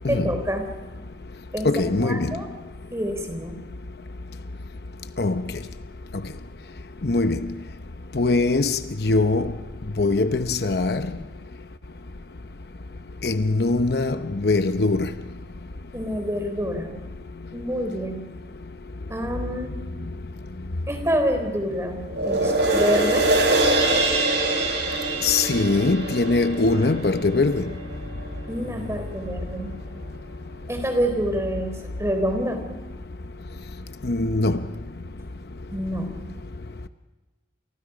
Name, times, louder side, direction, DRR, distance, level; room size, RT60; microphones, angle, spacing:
voice 1, 0.1-0.7 1.5-2.5 2.9-3.6 15.9-16.9 17.5-18.2 19.1-19.8 20.9-23.3 28.5-29.7 30.7-32.7 35.7-36.1, equal, 15° right, 4.2 m, -27 dB
voice 2, 1.6-2.3 5.2-5.3 7.0-7.4 8.2-9.4 10.0-11.0 13.2-14.2 14.4-15.1 25.2-27.6 34.1-34.6, left 3 dB, 60° left, 0.9 m, -21 dB
sound 1, 22.1-28.7 29.1-29.2, right 2 dB, 90° right, 6.4 m, -24 dB
29.5 x 29.0 x 5.1 m
head